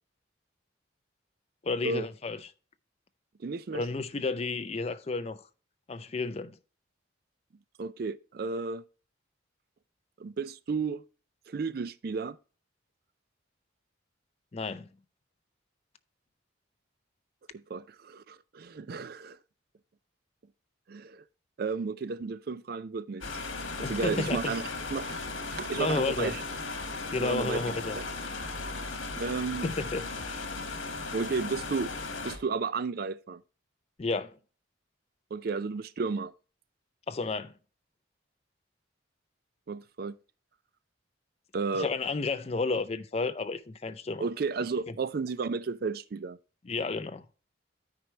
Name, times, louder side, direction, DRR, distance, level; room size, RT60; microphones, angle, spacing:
voice 1, 1.6-2.5 3.7-5.4 5.9-6.6 14.5-14.9 23.8-24.5 25.7-26.4 27.1-28.0 29.6-30.5 34.0-34.3 37.1-37.5 41.7-44.2 46.6-47.2, left 3 dB, 30° left, 0.4 m, -32 dB
voice 2, 3.4-3.8 7.8-8.8 10.2-11.0 11.5-12.4 17.5-19.4 20.9-21.2 21.6-23.2 23.8-26.4 27.2-28.0 29.2-29.7 31.1-31.9 32.2-33.4 35.3-36.3 39.7-40.2 41.5-41.9 44.2-46.4, right 4 dB, 50° right, 0.4 m, -33 dB
sound 1, 23.2-32.4, left 3 dB, 80° left, 1.5 m, -36 dB
13.0 x 4.6 x 3.1 m
head